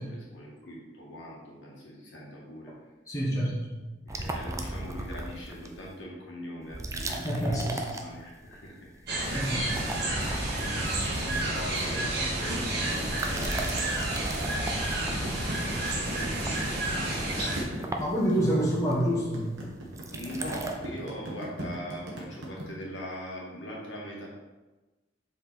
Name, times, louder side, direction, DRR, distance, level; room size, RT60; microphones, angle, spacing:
voice 1, 0.0-2.7 4.0-9.1 9.7-9.9 10.1-10.7 11.2-18.0 20.1-24.3, equal, 75° left, -3 dB, 1.8 m, -41 dB
voice 2, 3.1-3.8 7.1-7.8 9.3-9.7 18.0-19.5, equal, 20° left, -7 dB, 1.2 m, -28 dB
sound 1, 4.1-5.9 6.6-8.6 8.9-9.3 9.5-12.5 13.0-20.8, right 2 dB, 15° right, 0.5 m, -37 dB
sound 2, 9.1-17.6, right 1 dB, 60° right, 1.5 m, -30 dB
sound 3, 15.1-22.6, right 1 dB, 85° right, 1.4 m, -39 dB
5.5 x 4.7 x 4.1 m, 1.2 s
head